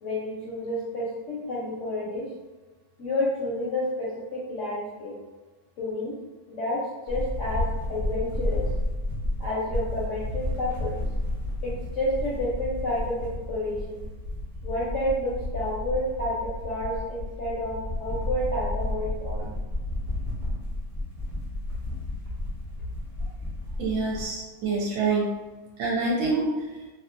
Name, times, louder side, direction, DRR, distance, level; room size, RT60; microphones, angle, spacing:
voice 1, 0.0-2.3 3.0-5.2 5.8-6.2 6.5-8.7 9.4-11.0 11.6-14.0 14.6-19.5 26.3-26.4, left 1 dB, 65° left, -7 dB, 0.8 m, -30 dB
sound 1, 7.1-24.2, left 1 dB, 25° right, 0.8 m, -32 dB
voice 2, 23.8-25.3 25.8-26.4, right 3 dB, 70° right, -4 dB, 1.1 m, -26 dB
2.8 x 2.3 x 2.5 m, 1.2 s
omnidirectional pair, 1.8 m